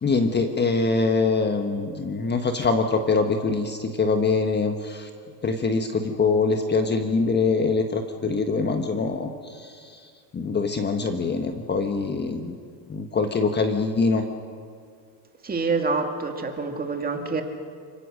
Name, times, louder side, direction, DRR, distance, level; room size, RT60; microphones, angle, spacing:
voice 1, 0.0-5.1 5.4-12.6 12.9-14.3, left 4 dB, 20° left, 6 dB, 1.3 m, -24 dB
voice 2, 15.4-17.4, right 4 dB, 20° right, 4 dB, 2.3 m, -26 dB
29.0 x 17.5 x 6.5 m, 2.2 s
supercardioid pair, 130°, 48 cm